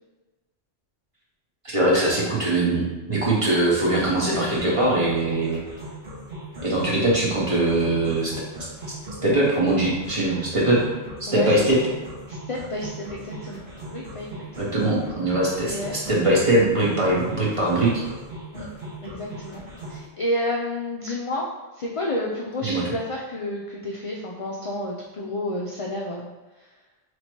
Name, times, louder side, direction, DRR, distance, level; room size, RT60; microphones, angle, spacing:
voice 1, 1.6-5.6 6.6-8.3 9.2-10.8 11.2-11.8 14.6-18.0 22.6-22.8, right 1 dB, 30° right, -5 dB, 0.9 m, -21 dB
sound 1, 4.0-20.0, right 1 dB, 65° right, 1.2 m, -38 dB
voice 2, 12.3-13.6 13.9-14.6 15.7-16.0 18.5-18.7 19.0-19.6 19.9-21.5 21.7-26.3, left 1 dB, 50° left, -3 dB, 0.4 m, -30 dB
3.1 x 2.8 x 4.4 m, 1.2 s
omnidirectional pair, 1.1 m